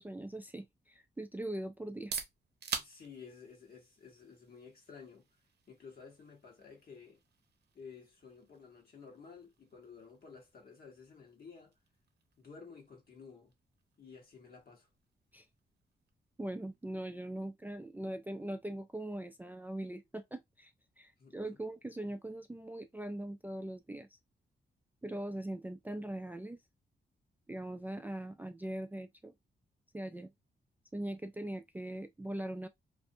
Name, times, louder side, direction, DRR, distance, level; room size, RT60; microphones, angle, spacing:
voice 1, 0.0-2.2 15.3-15.5 16.4-20.7 21.0-24.2 25.0-26.6 27.5-29.3 29.9-30.3 30.9-32.7, right 1 dB, 10° right, 0.3 m, -41 dB
sound 1, 1.8-17.5, right 6 dB, 65° right, 0.6 m, -49 dB
voice 2, 2.8-5.3 5.7-7.2 7.7-11.7 12.4-13.5 14.0-14.9 21.2-21.6, left 5 dB, 60° left, 1.2 m, -53 dB
2.6 x 2.1 x 2.6 m
cardioid pair, 80°, 18 cm